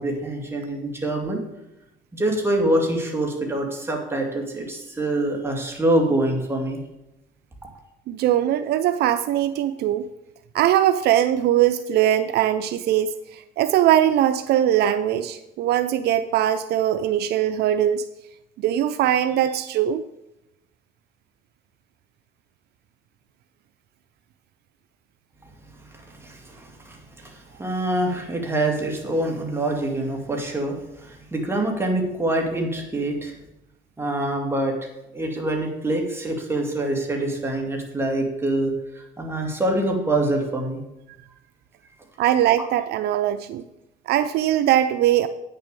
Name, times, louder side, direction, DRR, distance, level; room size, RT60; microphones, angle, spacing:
voice 1, 0.0-1.4 2.1-6.8 25.8-33.4 34.0-40.8, right 1 dB, 15° right, 1 dB, 2.6 m, -25 dB
voice 2, 8.1-10.1 10.5-18.0 18.6-20.0 42.2-43.6 44.1-45.3, right 11 dB, 70° right, 11 dB, 0.5 m, -21 dB
8.9 x 6.8 x 6.8 m, 0.91 s
cardioid pair, 110°, 17 cm